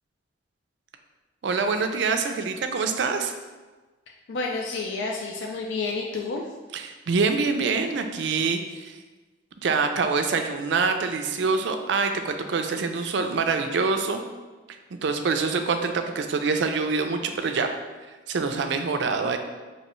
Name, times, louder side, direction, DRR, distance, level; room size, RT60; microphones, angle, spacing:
voice 1, 1.4-3.3 6.7-9.0 9.6-14.2 15.0-17.8 18.3-19.4, right 4 dB, 70° right, 6 dB, 0.4 m, -25 dB
voice 2, 4.3-6.4, left 3 dB, 80° left, 0 dB, 0.4 m, -30 dB
5.4 x 2.8 x 3.0 m, 1.3 s
head